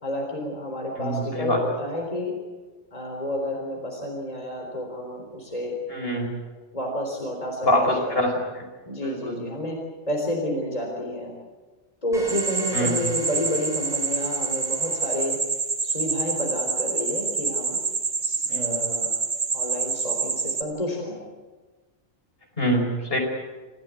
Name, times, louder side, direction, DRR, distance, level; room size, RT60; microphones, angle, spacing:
voice 1, 0.0-2.4 2.9-5.8 6.7-8.2 8.9-9.8 10.1-11.3 12.0-15.4 15.8-17.8 18.2-19.1 19.5-21.2, left 1 dB, 30° left, 0 dB, 4.1 m, -30 dB
voice 2, 1.0-1.6 5.9-6.3 7.6-8.3 8.6-8.7 9.0-9.4 12.7-13.1 18.5-18.8 22.6-23.2, equal, 55° left, 2 dB, 5.3 m, -24 dB
sound 1, 12.1-15.2, right 2 dB, ahead, 5.6 m, -42 dB
sound 2, 12.3-20.6, right 5 dB, 50° right, 1.9 m, -27 dB
27.0 x 16.0 x 8.4 m, 1.3 s
omnidirectional pair, 1.2 m